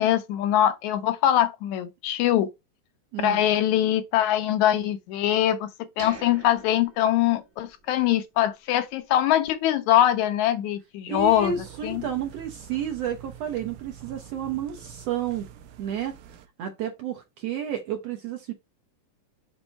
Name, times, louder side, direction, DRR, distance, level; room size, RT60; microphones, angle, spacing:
voice 1, 0.0-2.5 3.2-5.7 6.0-11.5 11.8-12.1, left 12 dB, 75° left, 1.9 m, -23 dB
voice 2, 3.1-3.5 11.1-15.5 15.8-16.2 16.6-18.5, right 9 dB, 70° right, 1.7 m, -31 dB
sound 1, 6.0-7.9 8.2-8.3 8.9-9.0, right 3 dB, 40° right, 0.9 m, -44 dB
sound 2, 11.2-16.5, right 9 dB, 85° right, 2.3 m, -46 dB
6.3 x 3.7 x 4.3 m
omnidirectional pair, 3.7 m